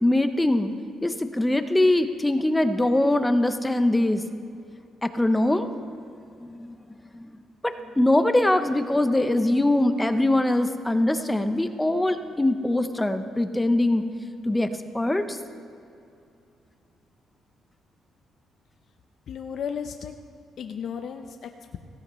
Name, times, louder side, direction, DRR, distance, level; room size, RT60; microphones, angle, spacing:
voice 1, 0.0-0.7 1.0-4.2 5.0-5.7 6.4-6.7 7.2-7.3 7.6-14.0 14.5-14.7 14.9-15.4, left 1 dB, 10° left, 9 dB, 0.7 m, -22 dB
voice 2, 19.3-20.1 20.6-21.8, left 7 dB, 65° left, 6 dB, 0.6 m, -34 dB
16.5 x 15.0 x 3.1 m, 2.7 s
cardioid pair, 90°, 0 cm